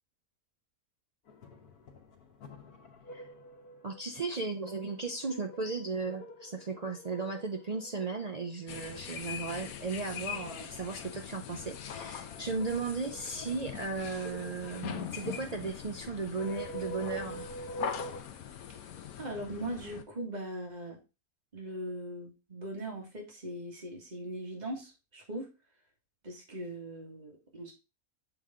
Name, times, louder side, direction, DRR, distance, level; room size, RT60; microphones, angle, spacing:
sound 1, 1.3-18.2, right 1 dB, 90° left, 1.6 m, -47 dB
voice 1, 3.8-17.5, right 4 dB, 60° right, 4 dB, 0.4 m, -36 dB
sound 2, 8.7-20.0, left 8 dB, 75° left, 1.1 m, -42 dB
voice 2, 19.2-21.0 21.5-25.5 26.2-27.7, right 1 dB, 30° right, -1 dB, 2.1 m, -40 dB
6.8 x 4.1 x 3.6 m, 0.28 s
omnidirectional pair, 1.6 m